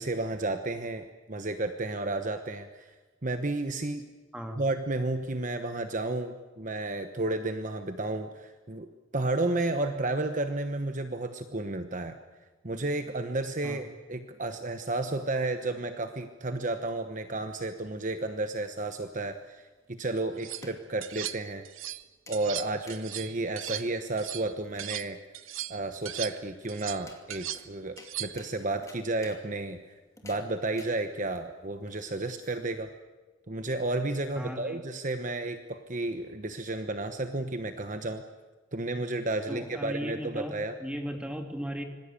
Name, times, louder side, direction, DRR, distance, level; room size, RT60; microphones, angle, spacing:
voice 1, 0.0-2.9 3.2-4.0 4.6-8.9 9.1-12.2 12.6-21.6 22.3-25.2 25.7-29.8 30.2-32.9 33.5-38.2 38.7-40.7, right 2 dB, 40° right, 8 dB, 1.1 m, -32 dB
sound 1, 18.1-33.0, left 3 dB, 15° left, 2.6 m, -56 dB
sound 2, 20.2-20.6 21.0-22.0 22.3-25.1 25.3-28.5, right 13 dB, 75° right, 0.9 m, -38 dB
voice 2, 34.3-34.8 39.5-40.5 40.8-41.8, equal, 5° right, 4 dB, 2.4 m, -36 dB
26.0 x 19.5 x 8.5 m, 1.2 s
head